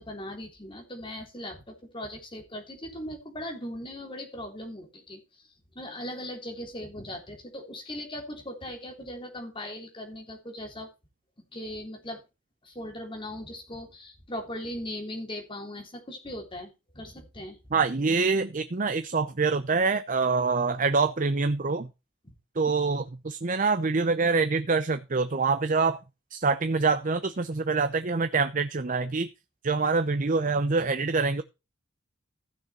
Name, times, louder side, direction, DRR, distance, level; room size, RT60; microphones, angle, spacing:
voice 1, 0.0-5.2 5.8-10.9 11.5-12.2 12.6-17.6, left 1 dB, 25° left, 3 dB, 3.4 m, -39 dB
voice 2, 17.7-21.9 22.6-26.0 26.3-29.3 29.6-31.4, right 4 dB, 40° right, 10 dB, 0.7 m, -25 dB
15.0 x 6.4 x 4.3 m, 0.27 s
head